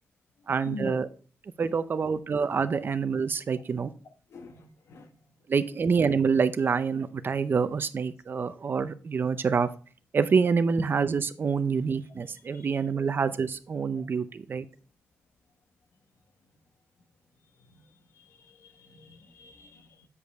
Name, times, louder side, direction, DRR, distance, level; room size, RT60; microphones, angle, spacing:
voice 1, 0.5-1.1 1.6-3.9 5.5-9.7 10.1-14.6, right 5 dB, 45° right, 12 dB, 0.5 m, -26 dB
voice 2, 4.3-5.1 12.5-12.8 17.7-17.8 18.1-20.1, left 3 dB, 75° left, 6 dB, 1.2 m, -44 dB
8.2 x 5.2 x 3.4 m, 0.40 s
wide cardioid pair, 110°, 5 cm